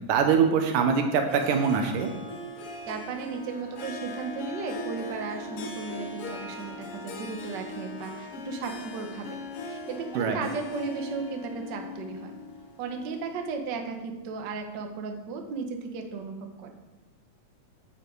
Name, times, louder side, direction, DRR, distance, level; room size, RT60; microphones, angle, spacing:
voice 1, 0.0-2.1 10.2-10.4, right 6 dB, 85° right, 5 dB, 2.6 m, -23 dB
Harp, 1.3-13.5, left 2 dB, 60° left, 1.6 m, -40 dB
voice 2, 2.9-12.3 12.8-16.7, right 5 dB, 65° right, 4 dB, 1.1 m, -35 dB
9.4 x 7.5 x 4.7 m, 1.0 s
omnidirectional pair, 3.6 m